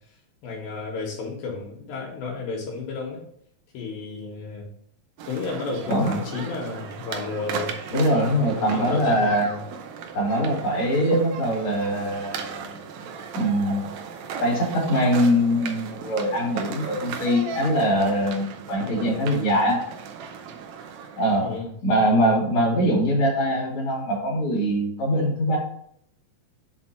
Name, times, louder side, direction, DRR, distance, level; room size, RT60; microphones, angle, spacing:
voice 1, 0.4-3.2 3.7-4.7 5.2-7.7 8.6-9.6 21.4-21.7, left 4 dB, 75° left, -1 dB, 2.8 m, -32 dB
sound 1, 5.2-21.6, right 6 dB, 90° right, 1.6 m, -36 dB
voice 2, 5.9-6.2 7.9-9.5 10.1-12.8 13.3-13.9 14.4-19.8 21.2-21.5 21.8-25.6, equal, 40° left, -3 dB, 2.7 m, -22 dB
6.0 x 4.5 x 4.2 m, 0.68 s
omnidirectional pair, 4.2 m